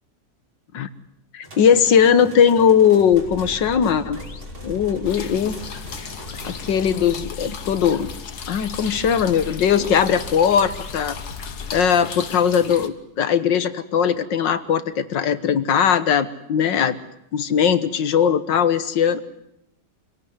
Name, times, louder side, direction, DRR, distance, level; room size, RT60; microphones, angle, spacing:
voice 1, 1.3-4.2 4.6-5.6 6.4-8.1 8.5-11.2 11.7-17.0 17.3-19.2, left 7 dB, 85° left, 12 dB, 1.9 m, -19 dB
sound 1, 1.4-6.8, right 1 dB, 80° right, 6.5 m, -42 dB
sound 2, 3.1-11.8, left 4 dB, 45° left, 1.9 m, -38 dB
sound 3, 5.0-12.9, left 6 dB, 60° left, 1.9 m, -37 dB
26.0 x 17.5 x 9.7 m, 0.80 s
omnidirectional pair, 1.9 m